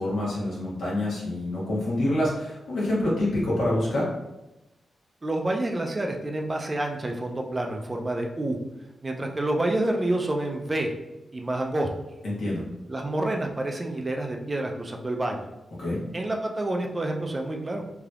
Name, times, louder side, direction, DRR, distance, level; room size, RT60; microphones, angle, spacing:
voice 1, 0.0-4.1 12.2-12.6 15.8-16.0, left 1 dB, 85° left, -6 dB, 1.3 m, -26 dB
voice 2, 5.2-8.6 9.0-10.9 11.3-11.9 12.9-15.4 16.1-17.8, right 1 dB, 25° right, 2 dB, 0.4 m, -28 dB
3.3 x 2.8 x 2.4 m, 0.97 s
wide cardioid pair, 100°, 0 cm